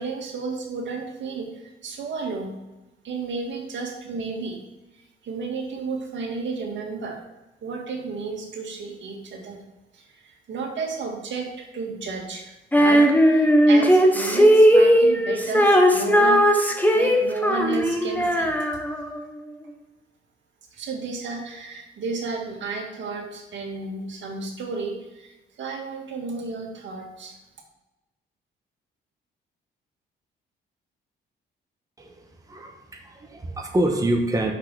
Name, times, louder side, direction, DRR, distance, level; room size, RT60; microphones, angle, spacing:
voice 1, 0.0-2.5 3.0-4.6 5.2-7.2 7.6-9.6 9.9-18.5 20.7-27.3, right 4 dB, 70° right, 1 dB, 2.0 m, -32 dB
Female singing, 12.7-19.2, equal, 10° left, 1.1 m, -17 dB
voice 2, 32.0-34.5, right 1 dB, 15° right, 2 dB, 1.2 m, -26 dB
6.3 x 5.9 x 6.1 m, 1.0 s
cardioid pair, 90°, 20 cm